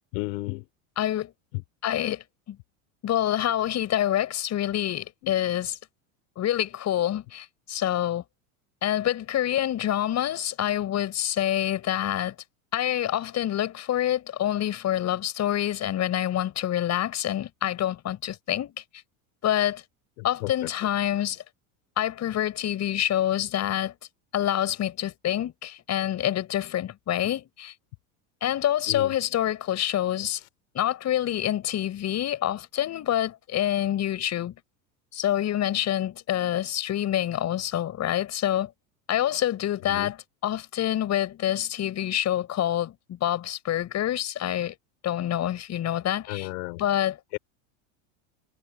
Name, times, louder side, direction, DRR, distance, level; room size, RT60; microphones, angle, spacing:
voice 1, 0.1-0.7 1.5-1.6 5.2-5.3 20.2-20.7 27.2-27.3 28.9-29.1 39.9-40.1 46.2-46.8 47.3-47.4, left 29 dB, 70° left, 4.7 m, -33 dB
voice 2, 1.0-1.3 1.8-2.6 3.0-5.8 6.4-8.2 8.8-12.3 12.7-18.7 19.4-19.8 20.2-21.4 22.0-23.9 24.3-27.7 28.4-30.4 30.7-34.5 35.1-38.7 39.1-40.2 40.4-44.7 45.0-46.5 46.8-47.2, left 11 dB, 40° left, 6.3 m, -27 dB
supercardioid pair, 115°, 42 cm